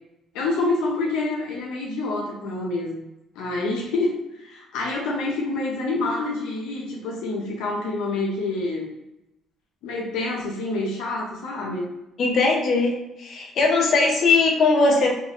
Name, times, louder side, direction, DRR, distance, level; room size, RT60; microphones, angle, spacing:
voice 1, 0.3-3.0 3.3-8.9 9.8-11.9, left 2 dB, 85° left, -2 dB, 0.7 m, -27 dB
voice 2, 12.2-12.9 13.2-15.1, left 3 dB, 55° left, -1 dB, 0.9 m, -19 dB
3.5 x 2.4 x 3.0 m, 0.91 s
cardioid pair, 95°, 0 cm